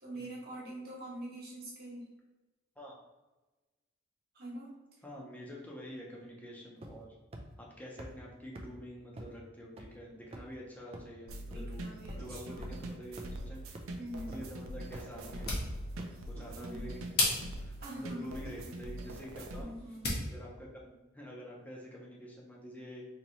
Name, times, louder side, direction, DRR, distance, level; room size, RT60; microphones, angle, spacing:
voice 1, 0.0-2.1 4.3-4.7 11.5-12.7 14.0-14.4 16.5-16.9 17.8-18.3 19.6-20.1, right 1 dB, 50° right, -4 dB, 1.3 m, -44 dB
voice 2, 5.0-7.1 7.6-11.8 12.1-13.8 14.3-15.5 16.2-19.7 20.2-23.1, equal, 10° left, -3 dB, 0.8 m, -47 dB
sound 1, 6.8-7.1 7.3-7.4 8.0-8.1 8.5-8.6 9.2-9.3 9.8-9.9 10.3-10.5 10.9-11.0 11.5-11.6 12.1-12.2 12.6-12.7 13.2-13.3 13.7-13.8 14.3-14.5 14.9-15.0 15.5-15.6 16.0-16.1, right 1 dB, 30° right, 0.4 m, -45 dB
sound 2, 11.3-19.6, right 1 dB, 85° right, 0.5 m, -43 dB
sound 3, 15.2-20.3, left 2 dB, 50° left, 1.0 m, -37 dB
3.0 x 2.9 x 4.0 m, 1.1 s
head